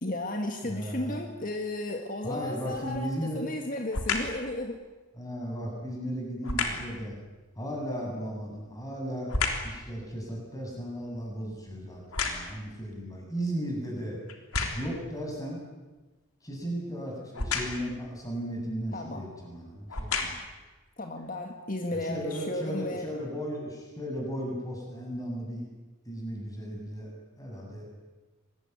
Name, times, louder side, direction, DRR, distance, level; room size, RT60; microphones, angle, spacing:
voice 1, 0.0-4.8 18.9-19.2 21.0-23.1, left 1 dB, 40° left, 4 dB, 1.9 m, -34 dB
voice 2, 0.6-1.2 2.2-3.4 5.2-7.2 7.6-9.3 9.6-14.2 14.7-15.6 16.4-20.4 21.9-25.7 26.0-27.1 27.4-27.9, equal, 15° left, -1 dB, 7.9 m, -35 dB
sound 1, 2.8-3.1 3.9-4.4 6.4-6.9 8.3-9.8 10.2-12.7 13.4-13.5 14.3-15.0 17.3-17.9 19.0-19.1 19.8-20.6 21.2-21.3, left 4 dB, 85° left, 3.5 m, -32 dB
26.0 x 20.5 x 9.6 m, 1.2 s
head